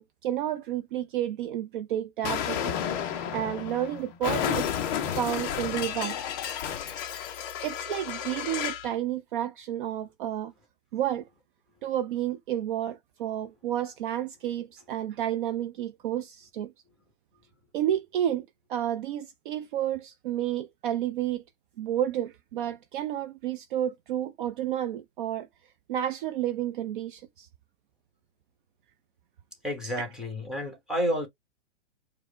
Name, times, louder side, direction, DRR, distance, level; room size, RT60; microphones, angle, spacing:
voice 1, 0.0-2.8 3.3-4.8 5.2-6.2 7.6-10.5 10.9-11.3 11.8-16.7 17.7-21.4 21.8-25.5 25.9-27.5, right 11 dB, 45° right, 0.5 m, -31 dB
Explosion, 2.2-8.9, left 9 dB, 20° left, 0.3 m, -32 dB
voice 2, 29.6-31.3, equal, ahead, 1.3 m, -30 dB
4.7 x 2.1 x 3.4 m
hypercardioid pair, 140°, 35 cm